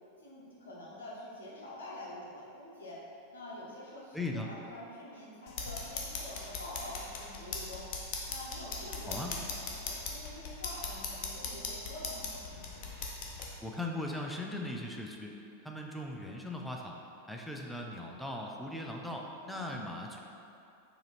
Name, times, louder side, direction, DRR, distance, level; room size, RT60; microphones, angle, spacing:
voice 1, 0.2-3.0 3.3-7.9 8.3-12.3 19.4-19.6, left 1 dB, 70° left, -5 dB, 0.9 m, -46 dB
voice 2, 4.1-4.5 9.1-9.3 13.6-15.4 15.6-17.0 17.3-20.2, left 1 dB, ahead, 0 dB, 0.4 m, -39 dB
sound 1, 5.5-13.5, left 4 dB, 45° left, 0.6 m, -40 dB
4.7 x 2.8 x 3.1 m, 2.6 s
figure-of-eight pair, 90°, 0 cm